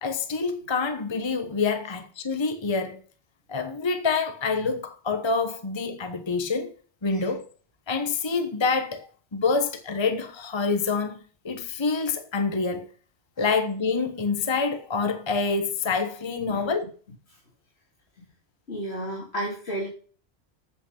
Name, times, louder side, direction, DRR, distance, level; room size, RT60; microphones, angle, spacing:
voice 1, 0.0-3.0 3.5-6.7 7.0-7.4 7.9-11.2 11.4-12.9 13.4-16.9, left 4 dB, 25° left, 1.0 m, -27 dB
voice 2, 18.7-19.9, right 1 dB, 70° left, 3.4 m, -32 dB
8.2 x 7.9 x 5.4 m
omnidirectional pair, 1.1 m